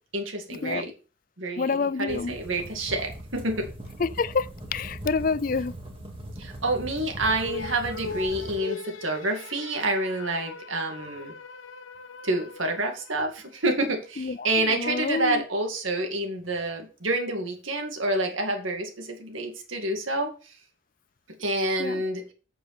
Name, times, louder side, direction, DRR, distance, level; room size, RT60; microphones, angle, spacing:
voice 1, 0.1-0.9 1.4-3.7 6.4-11.3 12.2-20.5 21.4-22.2, right 2 dB, 80° right, 2.2 m, -28 dB
voice 2, 1.6-2.4 4.0-5.7 14.2-15.4 21.8-22.0, left 4 dB, 45° left, 0.4 m, -28 dB
sound 1, 2.1-8.6, right 1 dB, 25° right, 2.1 m, -40 dB
sound 2, 7.2-13.8, left 4 dB, 80° left, 0.9 m, -40 dB
8.5 x 6.9 x 4.2 m
head